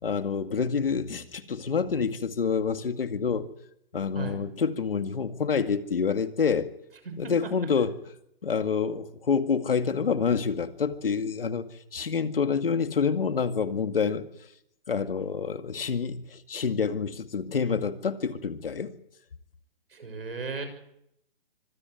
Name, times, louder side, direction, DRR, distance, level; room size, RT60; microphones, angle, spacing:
voice 1, 0.0-3.5 3.9-6.7 7.2-8.0 8.4-14.3 14.9-18.9, left 6 dB, 70° left, 8 dB, 2.2 m, -27 dB
voice 2, 19.9-20.7, right 4 dB, 75° right, 8 dB, 6.9 m, -35 dB
25.0 x 15.0 x 9.4 m, 0.77 s
hypercardioid pair, 175°, 29 cm